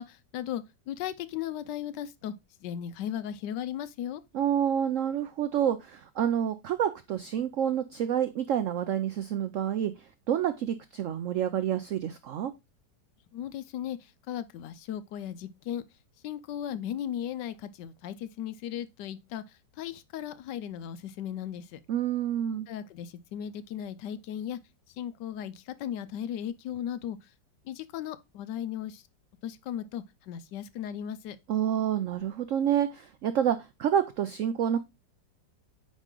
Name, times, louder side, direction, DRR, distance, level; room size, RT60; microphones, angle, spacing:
voice 1, 0.0-2.3 2.6-4.2 13.3-14.0 14.3-15.8 16.2-19.4 19.8-21.8 22.7-24.6 25.0-27.2 27.7-29.0 29.4-31.4, left 10 dB, 80° left, 1.2 m, -36 dB
voice 2, 4.3-9.9 10.3-12.5 21.9-22.7 31.5-34.8, right 9 dB, 85° right, 0.6 m, -28 dB
9.0 x 3.1 x 3.7 m
omnidirectional pair, 1.9 m